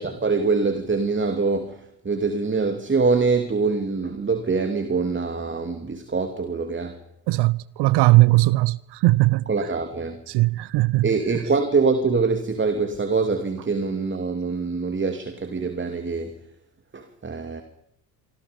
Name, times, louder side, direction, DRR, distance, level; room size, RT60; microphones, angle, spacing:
voice 1, 0.0-7.0 9.5-10.2 11.0-16.4 16.9-17.6, right 4 dB, 25° right, 2.7 m, -24 dB
voice 2, 7.3-9.5 10.3-11.1, right 20 dB, 55° right, 0.8 m, -19 dB
26.0 x 25.0 x 5.3 m
hypercardioid pair, 65°, 49 cm